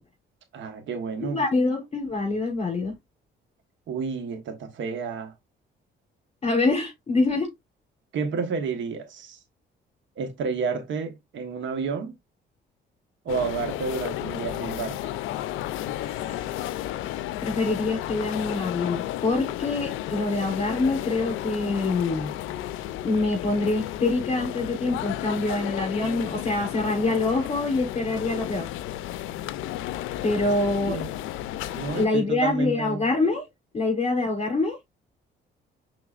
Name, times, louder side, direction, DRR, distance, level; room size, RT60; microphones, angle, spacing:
voice 1, 0.5-1.4 3.9-5.3 8.1-9.4 10.2-12.1 13.2-15.0 30.9-31.1 31.7-33.1, right 5 dB, 70° right, 1.1 m, -30 dB
voice 2, 1.2-2.9 6.4-7.5 16.0-16.5 17.4-22.3 23.0-28.7 30.2-31.0 31.9-33.4 33.7-34.8, left 3 dB, 30° left, 3.8 m, -25 dB
sound 1, 13.3-32.1, left 13 dB, 90° left, 0.4 m, -33 dB
5.8 x 3.8 x 2.4 m
cardioid pair, 90°, 20 cm